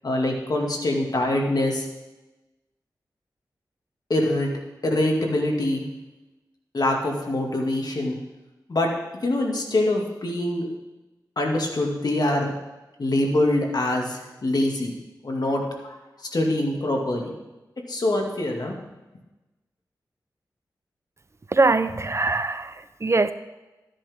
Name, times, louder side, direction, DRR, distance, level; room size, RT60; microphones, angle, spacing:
voice 1, 0.0-1.9 4.1-4.5 4.8-5.9 6.7-8.2 8.7-8.9 9.2-10.7 11.4-12.5 13.0-15.0 15.2-16.0 16.3-17.3 17.9-18.7, left 1 dB, 60° left, 1 dB, 2.1 m, -24 dB
voice 2, 21.5-23.3, right 3 dB, 40° right, 13 dB, 0.5 m, -22 dB
13.0 x 10.0 x 3.6 m, 1.1 s
cardioid pair, 55°, 8 cm